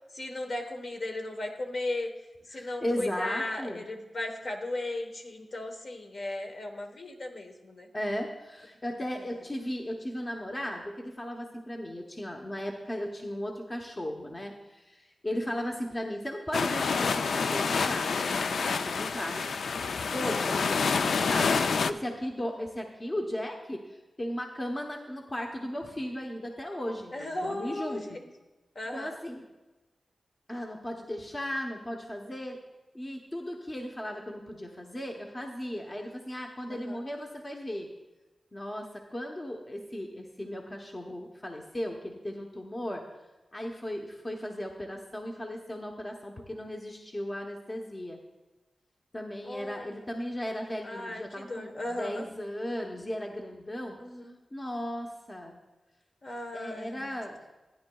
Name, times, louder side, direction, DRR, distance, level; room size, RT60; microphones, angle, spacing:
voice 1, 0.1-2.1 2.5-7.9 9.3-9.4 15.3-15.4 20.3-20.5 27.1-28.2 28.7-29.2 36.7-37.0 49.4-50.1 50.8-52.3 54.0-54.4 56.2-57.1, left 1 dB, 50° left, 3 dB, 1.1 m, -36 dB
voice 2, 2.5-3.9 7.9-19.5 19.9-21.5 21.8-23.8 24.2-28.2 28.9-29.4 30.5-32.6 32.9-37.9 38.5-43.0 43.5-48.2 49.1-54.0 54.5-55.6 56.5-57.4, equal, 25° left, 1 dB, 0.8 m, -36 dB
sound 1, 16.5-21.9, left 5 dB, 85° left, 0.3 m, -28 dB
14.5 x 9.7 x 2.3 m, 1.1 s
wide cardioid pair, 125°, 0 cm